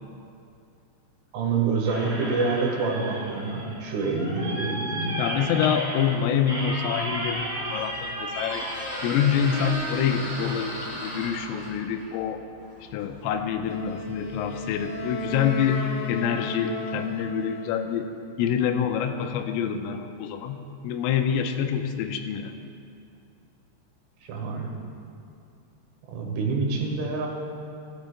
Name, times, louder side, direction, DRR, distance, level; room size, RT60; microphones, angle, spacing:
voice 1, 1.3-5.2 24.2-24.7 26.1-27.3, right 4 dB, 75° right, -1 dB, 3.8 m, -27 dB
sound 1, 1.8-9.7, right 1 dB, 40° right, 2.7 m, -34 dB
voice 2, 5.2-8.7 9.0-12.4 12.9-18.1 18.4-22.5, left 8 dB, 90° left, 6 dB, 3.2 m, -26 dB
Squeak, 7.2-15.9, equal, 30° left, 2.0 m, -38 dB
Wind instrument woodwind instrument, 13.6-17.9, left 2 dB, 75° left, 3.1 m, -34 dB
16.5 x 13.0 x 2.2 m, 2.5 s
omnidirectional pair, 5.7 m